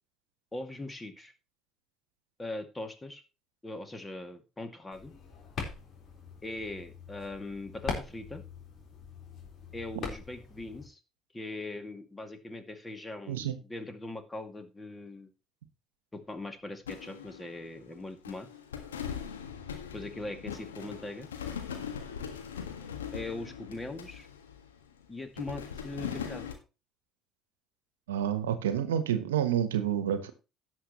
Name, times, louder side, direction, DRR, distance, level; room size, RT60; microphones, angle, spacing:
voice 1, 0.5-1.3 2.4-3.2 3.6-5.1 6.4-8.4 9.7-11.0 11.3-15.3 16.1-18.5 19.9-21.3 23.1-24.3 25.1-26.5, left 2 dB, 20° left, 2.3 m, -40 dB
sound 1, 4.9-10.9, left 4 dB, 50° left, 4.0 m, -42 dB
voice 2, 13.3-13.6 28.1-30.3, right 10 dB, 80° right, 1.1 m, -29 dB
sound 2, 16.9-18.0 18.2-24.9 25.4-26.5, left 8 dB, 85° left, 1.5 m, -40 dB
17.0 x 6.3 x 3.0 m
figure-of-eight pair, 55°, 0 cm